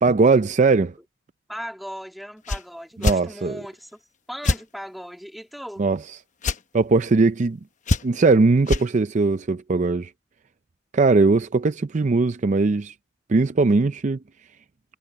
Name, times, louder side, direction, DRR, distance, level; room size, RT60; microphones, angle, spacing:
voice 1, 0.0-0.9 3.0-3.6 5.8-6.0 6.7-7.6 8.0-10.1 10.9-12.9 13.3-14.2, right 3 dB, 40° right, 0.4 m, -19 dB
voice 2, 1.5-4.0 4.3-5.8, equal, ahead, 2.0 m, -37 dB
sound 1, 2.4-2.6 3.0-3.2 4.4-4.6 6.4-6.6 7.9-8.3 8.7-8.9, left 2 dB, 40° left, 0.9 m, -22 dB
head